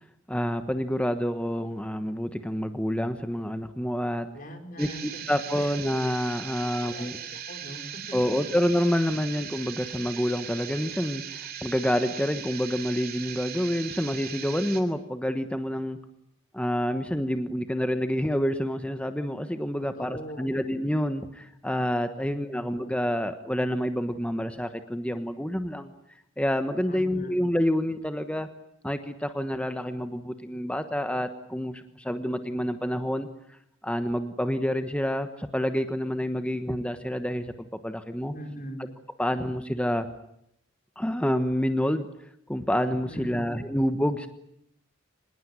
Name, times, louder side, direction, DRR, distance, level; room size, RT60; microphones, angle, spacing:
voice 1, 0.3-4.3 4.8-7.1 8.1-16.0 16.5-25.9 26.4-28.5 28.8-33.3 33.8-38.3 39.2-40.1 41.0-42.1 42.5-44.3, equal, 5° left, 8 dB, 1.2 m, -28 dB
voice 2, 4.3-5.2 5.6-5.7 6.8-8.2 20.0-20.6 22.2-22.7 26.9-27.3 38.3-38.9 43.1-43.5, equal, 40° left, 5 dB, 5.0 m, -41 dB
sound 1, 4.8-14.8, right 9 dB, 50° right, 3.1 m, -39 dB
25.5 x 21.0 x 9.7 m, 0.75 s
head